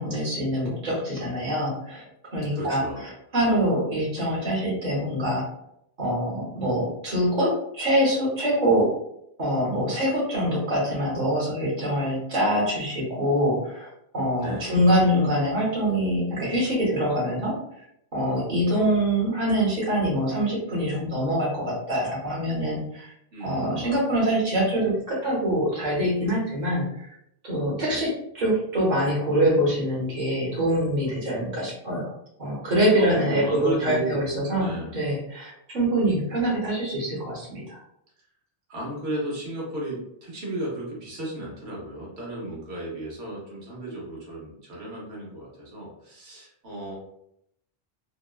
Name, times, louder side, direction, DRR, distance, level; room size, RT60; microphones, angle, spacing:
voice 1, 0.0-2.0 2.3-2.8 3.3-5.5 6.0-8.9 9.4-13.9 14.1-17.6 18.1-23.1 23.4-27.1 27.4-32.1 32.4-37.8, equal, 45° right, -4 dB, 1.0 m, -24 dB
voice 2, 2.5-3.1 14.4-14.7 23.3-24.0 27.8-28.0 32.9-34.3 34.6-35.0 38.7-47.0, right 1 dB, 85° right, -4 dB, 1.1 m, -34 dB
2.9 x 2.1 x 2.2 m, 0.77 s
omnidirectional pair, 1.1 m